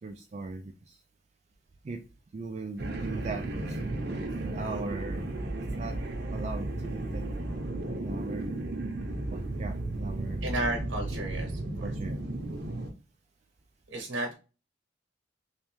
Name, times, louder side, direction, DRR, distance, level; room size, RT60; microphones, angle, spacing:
voice 1, 0.0-1.0 1.8-2.0 2.3-3.8 4.3-5.3 5.6-6.0 6.3-7.2 7.9-8.6 9.3-10.5 11.8-12.2, right 3 dB, 35° right, 4 dB, 0.3 m, -39 dB
sound 1, 2.8-12.9, right 2 dB, 60° right, 0.7 m, -34 dB
voice 2, 10.4-11.9 13.9-14.3, right 1 dB, 85° right, 3 dB, 0.9 m, -33 dB
3.3 x 3.1 x 3.1 m, 0.32 s
head